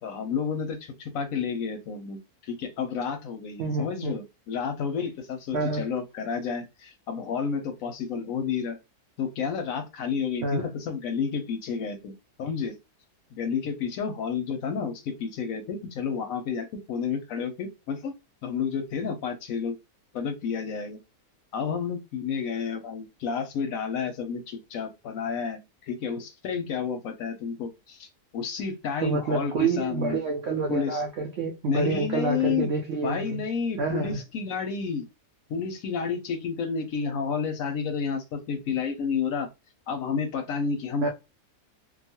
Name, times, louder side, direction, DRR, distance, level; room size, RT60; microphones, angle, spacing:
voice 1, 0.0-8.8 9.2-12.1 12.4-12.8 13.3-18.1 18.4-19.7 20.1-21.0 21.5-30.2 30.7-31.0 31.7-32.7 33.0-35.0 35.5-39.5 39.9-41.1, left 6 dB, 70° left, 1.0 m, -30 dB
voice 2, 3.6-4.1 5.5-5.9 10.4-10.7 29.0-33.4 33.8-34.2 41.0-41.1, right 3 dB, 75° right, 0.6 m, -28 dB
2.6 x 2.3 x 2.8 m
omnidirectional pair, 1.6 m